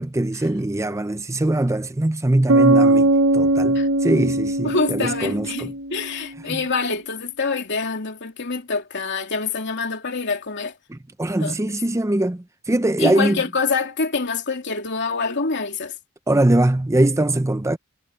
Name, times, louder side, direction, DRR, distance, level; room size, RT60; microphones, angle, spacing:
voice 1, 0.0-5.7 6.5-6.6 10.9-13.4 16.3-17.8, right 1 dB, 15° right, 0.6 m, -22 dB
Bass guitar, 2.5-6.1, right 2 dB, 55° right, 1.1 m, -19 dB
voice 2, 4.6-10.7 11.4-11.5 13.0-15.9, left 4 dB, 55° left, 3.0 m, -26 dB
head